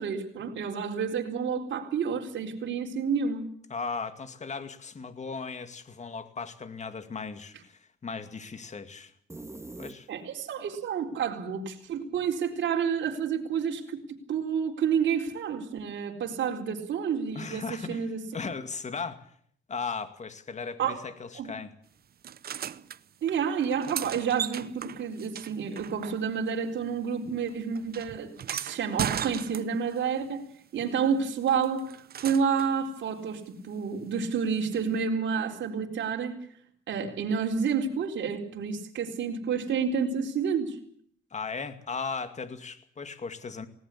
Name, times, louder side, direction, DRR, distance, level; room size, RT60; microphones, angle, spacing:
voice 1, 0.0-3.4 10.1-14.0 14.3-18.2 20.8-21.0 21.4-21.5 23.2-30.5 30.7-36.3 36.9-40.8, right 6 dB, 65° right, 1 dB, 4.2 m, -29 dB
voice 2, 3.7-9.1 9.8-10.1 17.3-18.1 18.3-19.3 19.7-21.7 41.3-43.7, left 5 dB, 35° left, 9 dB, 2.3 m, -37 dB
sound 1, 9.3-10.5, right 2 dB, 15° right, 1.6 m, -43 dB
sound 2, 22.2-23.0 23.6-26.6 26.8-30.0 31.5-32.8 34.7-34.8, right 9 dB, 50° right, 0.8 m, -37 dB
20.0 x 18.5 x 8.6 m, 0.62 s
cardioid pair, 90°, 20 cm